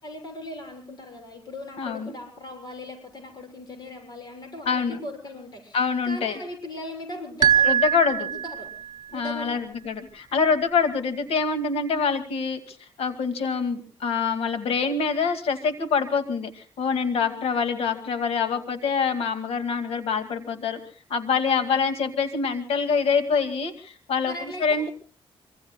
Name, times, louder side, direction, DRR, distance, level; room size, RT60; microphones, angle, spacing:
voice 1, 0.0-7.8 8.1-9.7 17.2-17.5 21.5-21.8 24.2-24.9, left 1 dB, 45° left, 4 dB, 6.9 m, -39 dB
voice 2, 1.8-2.1 4.7-5.0 5.7-6.4 7.6-8.3 9.1-20.8 21.1-24.3 24.6-24.9, left 5 dB, 75° left, 8 dB, 2.1 m, -25 dB
sound 1, 7.4-9.0, right 8 dB, 40° right, 0.9 m, -22 dB
25.5 x 25.5 x 2.2 m, 0.38 s
wide cardioid pair, 145°, 10 cm